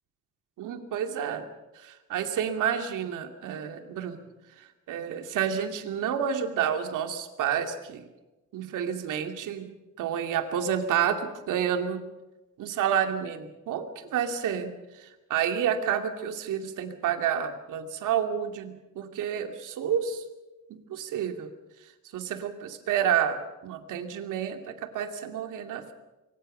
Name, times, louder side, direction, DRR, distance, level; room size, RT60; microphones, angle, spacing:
voice 1, 0.6-1.5 1.8-4.2 4.6-8.0 8.5-9.7 10.0-12.0 12.6-20.2 20.7-21.5 22.1-25.9, right 8 dB, 90° right, 6 dB, 2.6 m, -29 dB
25.0 x 24.5 x 5.6 m, 1.1 s
cardioid pair, 170°, 30 cm